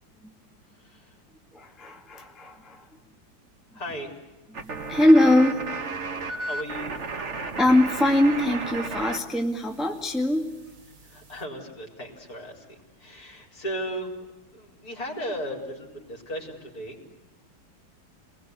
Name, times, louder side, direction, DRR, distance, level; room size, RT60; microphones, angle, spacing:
voice 1, 0.7-1.2 2.8-2.9 3.7-4.2 6.2-7.4 11.0-14.3 14.5-17.1, equal, 50° left, 1 dB, 5.0 m, -37 dB
voice 2, 1.5-2.9 4.6-5.6 7.6-10.5, left 1 dB, ahead, 2 dB, 1.8 m, -22 dB
sound 1, 4.5-9.2 9.5-11.4, right 3 dB, 40° right, 1.7 m, -34 dB
28.5 x 20.5 x 9.6 m, 1.1 s
omnidirectional pair, 2.1 m